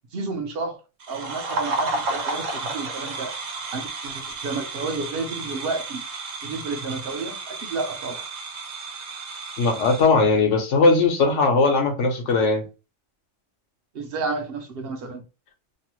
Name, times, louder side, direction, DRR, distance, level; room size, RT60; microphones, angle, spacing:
voice 1, 0.1-0.8 1.1-3.3 3.7-6.0 6.4-8.3 13.9-15.2, right 3 dB, 55° right, 0.8 m, -31 dB
sound 1, 1.0-10.1, right 3 dB, 85° right, 1.2 m, -32 dB
voice 2, 9.6-12.6, left 3 dB, 70° left, 1.2 m, -19 dB
3.0 x 2.1 x 3.0 m
omnidirectional pair, 1.3 m